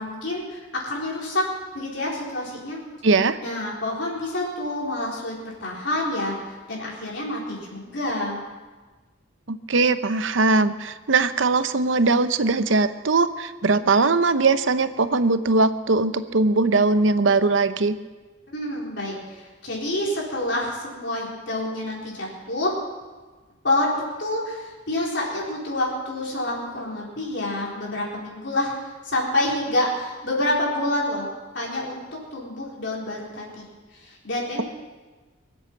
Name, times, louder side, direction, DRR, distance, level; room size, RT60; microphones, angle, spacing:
voice 1, 0.0-1.5 1.7-2.8 3.4-8.4 18.5-22.7 23.6-28.7 29.0-31.3 31.5-33.6 33.9-34.6, left 1 dB, 65° left, -4 dB, 4.1 m, -28 dB
voice 2, 3.0-3.4 9.5-18.0, right 3 dB, 75° right, 11 dB, 0.8 m, -20 dB
23.0 x 8.1 x 7.4 m, 1.3 s
head